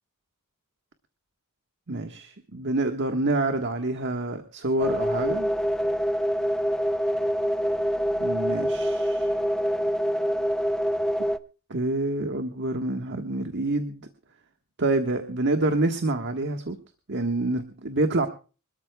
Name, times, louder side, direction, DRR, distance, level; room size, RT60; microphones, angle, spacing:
voice 1, 1.9-5.5 8.2-9.3 11.7-14.1 14.8-16.8 17.1-18.3, right 2 dB, 55° right, 6 dB, 1.5 m, -27 dB
sound 1, 4.8-11.4, equal, 5° left, 0.7 m, -25 dB
26.0 x 13.0 x 2.3 m, 0.35 s
head